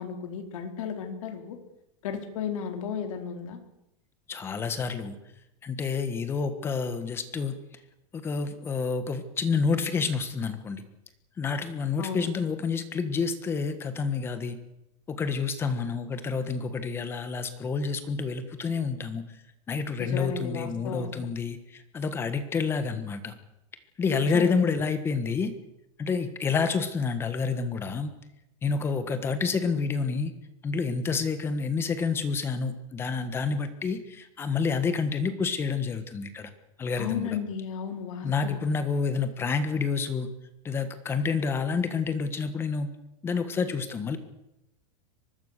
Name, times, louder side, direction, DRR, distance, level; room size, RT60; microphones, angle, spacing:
voice 1, 0.0-1.6 2.0-3.6 12.0-12.3 20.0-21.1 24.1-24.8 37.0-38.6, left 7 dB, 65° left, 5 dB, 4.2 m, -34 dB
voice 2, 4.3-5.1 5.6-7.6 8.1-10.8 11.4-14.6 15.1-19.4 19.7-23.3 24.0-25.5 26.0-28.1 28.6-30.3 30.6-36.5 36.8-37.3 38.2-40.3 40.6-42.9 43.2-44.2, left 5 dB, 15° left, 10 dB, 1.4 m, -29 dB
24.0 x 20.5 x 6.7 m, 0.85 s
supercardioid pair, 180°, 18 cm